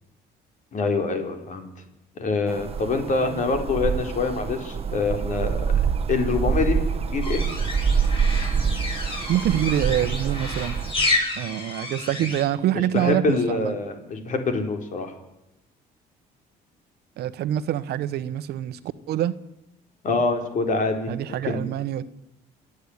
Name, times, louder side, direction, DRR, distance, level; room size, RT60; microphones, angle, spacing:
voice 1, 0.7-1.7 2.2-5.6 6.1-7.4 12.7-15.1 20.0-21.6, left 3 dB, 50° left, 5 dB, 4.3 m, -25 dB
sound 1, 2.5-10.9, right 6 dB, 35° right, 1.3 m, -26 dB
sound 2, 7.2-12.4, left 2 dB, 30° left, 7.7 m, -30 dB
voice 2, 9.3-10.8 11.4-13.8 17.2-18.8 19.1-19.3 21.1-22.0, right 12 dB, 70° right, 14 dB, 1.2 m, -25 dB
27.5 x 10.0 x 9.8 m, 0.89 s
cardioid pair, 110°, 17 cm